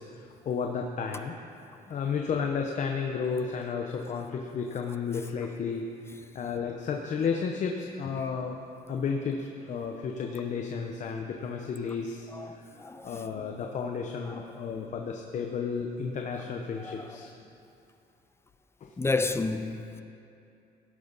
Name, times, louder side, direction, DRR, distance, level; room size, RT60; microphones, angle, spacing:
voice 1, 0.0-1.3 1.9-5.9 6.3-8.6 8.9-12.7 13.0-17.3 18.8-18.9, left 5 dB, 50° left, 2 dB, 0.9 m, -32 dB
voice 2, 12.8-13.2 16.8-16.9 19.0-20.0, left 3 dB, 15° left, 8 dB, 0.6 m, -30 dB
17.0 x 11.0 x 4.1 m, 2.6 s
cardioid pair, 120°, 16 cm